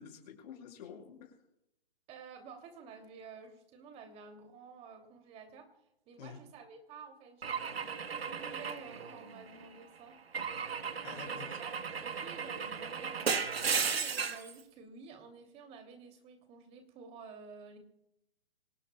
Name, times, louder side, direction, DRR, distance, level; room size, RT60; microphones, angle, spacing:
voice 1, 0.0-1.3 6.2-6.4 11.0-11.6, left 7 dB, 40° left, 1 dB, 6.3 m, -48 dB
voice 2, 2.1-5.7 6.1-10.2 11.1-17.8, right 5 dB, 20° right, 5 dB, 2.8 m, -51 dB
Car / Engine / Glass, 7.4-9.6 10.3-14.5, right 6 dB, 80° right, 1.4 m, -35 dB
26.0 x 17.5 x 2.3 m, 0.82 s
hypercardioid pair, 140°, 30 cm